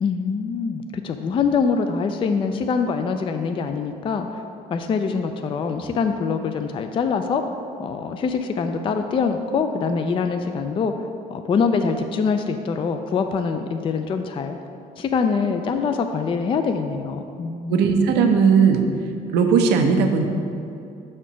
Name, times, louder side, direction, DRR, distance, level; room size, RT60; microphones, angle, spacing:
voice 1, 0.0-4.4 4.7-7.4 7.8-10.9 11.3-14.6 15.0-17.8, left 5 dB, 30° left, 7 dB, 0.3 m, -24 dB
voice 2, 17.7-18.9 19.3-20.3, right 6 dB, 85° right, 4 dB, 0.7 m, -17 dB
5.6 x 4.3 x 6.1 m, 2.6 s
cardioid pair, 110°, 17 cm